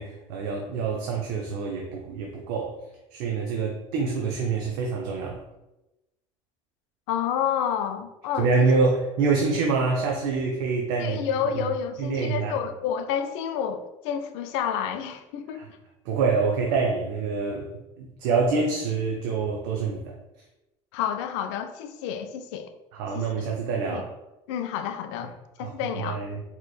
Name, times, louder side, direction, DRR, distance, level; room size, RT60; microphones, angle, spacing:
voice 1, 0.0-2.8 3.1-5.4 8.4-11.2 11.5-11.6 12.0-12.6 15.5-15.7 16.1-17.7 18.0-20.1 22.9-24.1 25.6-26.4, right 4 dB, 70° right, 0.5 m, -26 dB
voice 2, 7.1-8.7 11.0-15.7 20.9-22.7 23.1-23.2 23.9-24.0 24.5-25.3 25.6-26.2, left 8 dB, 75° left, 0.4 m, -29 dB
4.1 x 2.9 x 2.3 m
hypercardioid pair, 70°, 15 cm